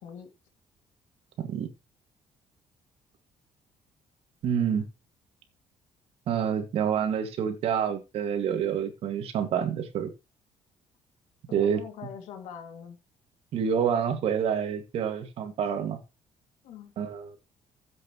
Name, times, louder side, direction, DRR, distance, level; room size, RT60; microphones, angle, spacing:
voice 1, 1.4-1.7 4.4-4.9 6.3-10.1 11.5-11.8 13.5-16.0 17.0-17.4, right 8 dB, 60° right, 1.9 m, -28 dB
voice 2, 11.5-13.0 16.6-16.9, left 7 dB, 85° left, 2.3 m, -43 dB
14.5 x 7.9 x 3.0 m
cardioid pair, 150°, 11 cm